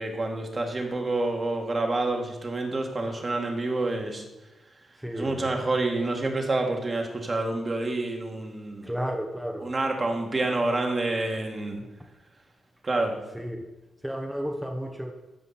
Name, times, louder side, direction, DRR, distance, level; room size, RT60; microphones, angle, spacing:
voice 1, 0.0-4.2 5.1-8.9 9.6-11.8 12.8-13.2, right 2 dB, 40° right, 2 dB, 2.0 m, -28 dB
voice 2, 5.0-5.5 8.8-9.7 13.3-13.6 14.0-15.1, equal, 5° right, 2 dB, 1.1 m, -32 dB
14.0 x 5.2 x 4.2 m, 1.0 s
supercardioid pair, 50°, 0 cm